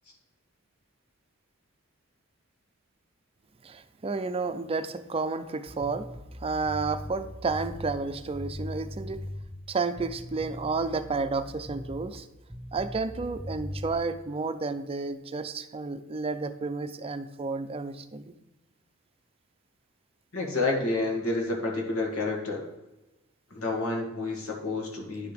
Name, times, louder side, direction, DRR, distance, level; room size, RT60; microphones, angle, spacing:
voice 1, 3.6-9.2 9.7-12.3 12.7-18.3, right 4 dB, 25° right, 10 dB, 0.5 m, -31 dB
sound 1, 5.7-9.6 10.0-12.2 12.5-13.9, left 1 dB, ahead, 1.4 m, -40 dB
voice 2, 20.3-22.6 23.5-25.3, left 2 dB, 90° left, 0 dB, 2.0 m, -29 dB
9.9 x 4.8 x 5.1 m, 1.0 s
head